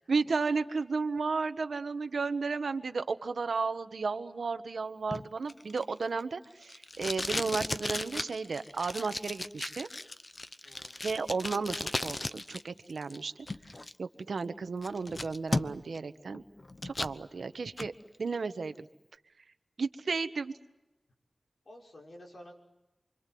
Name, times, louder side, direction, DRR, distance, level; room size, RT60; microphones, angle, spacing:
voice 1, 0.1-9.9 11.0-13.3 14.0-16.4 16.8-17.9 18.2-18.9 19.8-20.5, right 4 dB, 80° right, 10 dB, 1.3 m, -33 dB
Packing tape duct tape, 5.1-12.6 12.9-13.9 14.4-14.5 14.8-16.0 16.3-17.2 17.6-17.9, left 2 dB, 35° left, 0.9 m, -36 dB
voice 2, 10.6-11.1 21.6-22.5, equal, 55° left, 0 dB, 6.1 m, -51 dB
29.0 x 24.5 x 7.8 m, 1.0 s
wide cardioid pair, 105°, 0 cm